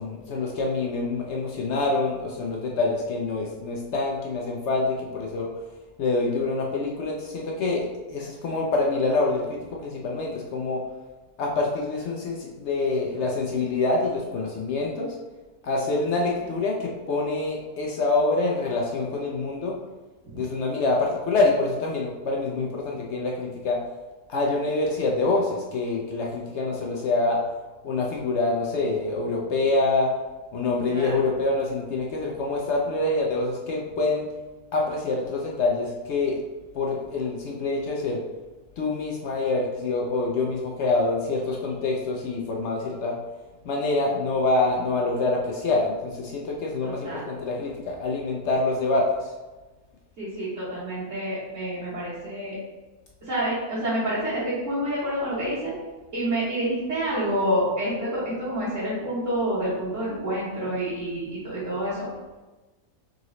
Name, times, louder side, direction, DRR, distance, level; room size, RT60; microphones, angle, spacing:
voice 1, 0.0-5.5 6.0-10.8 11.4-15.2 15.6-19.8 20.3-23.8 24.3-27.4 27.8-30.2 30.5-34.3 34.7-36.4 36.7-38.2 38.8-43.2 43.6-49.3, left 3 dB, 65° left, -1 dB, 0.7 m, -26 dB
voice 2, 46.8-47.3 50.2-52.6 53.3-55.7 56.1-62.1, right 1 dB, 55° right, -13 dB, 1.7 m, -28 dB
3.8 x 3.8 x 3.1 m, 1.2 s
omnidirectional pair, 1.7 m